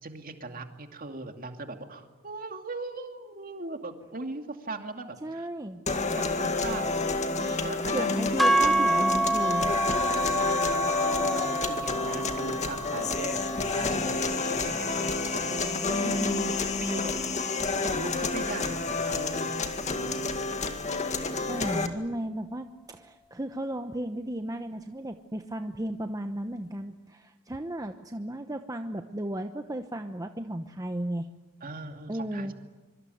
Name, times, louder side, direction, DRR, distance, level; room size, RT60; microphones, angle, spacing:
voice 1, 0.0-5.5 6.1-6.9 7.3-8.3 10.2-16.0 16.8-17.1 17.8-20.1 31.6-32.5, right 2 dB, 40° right, 5 dB, 2.5 m, -40 dB
voice 2, 5.2-5.8 7.9-9.7 16.0-16.5 21.3-31.3 32.1-32.5, right 1 dB, 15° right, 6 dB, 0.9 m, -34 dB
sound 1, 5.9-21.9, left 3 dB, 35° left, 2.1 m, -29 dB
sound 2, 8.4-16.6, right 1 dB, ahead, 1.5 m, -29 dB
25.0 x 24.0 x 9.4 m, 1.2 s
head